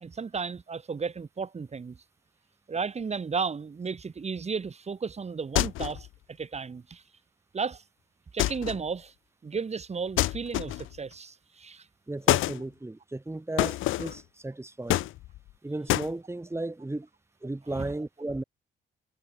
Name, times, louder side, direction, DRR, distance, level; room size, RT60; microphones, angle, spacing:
voice 1, 0.0-2.0 2.7-7.0 7.5-7.8 8.3-9.1 9.4-11.9 17.7-17.9, right 5 dB, 35° right, 2.1 m, -34 dB
sound 1, 5.6-6.1 8.4-8.9 10.2-11.0 12.3-12.6 13.6-14.2 14.9-15.5 15.9-16.1, left 16 dB, 90° left, 1.1 m, -27 dB
voice 2, 12.1-15.1 15.6-17.1 17.4-18.4, right 2 dB, 15° right, 4.3 m, -35 dB
cardioid pair, 90°, 20 cm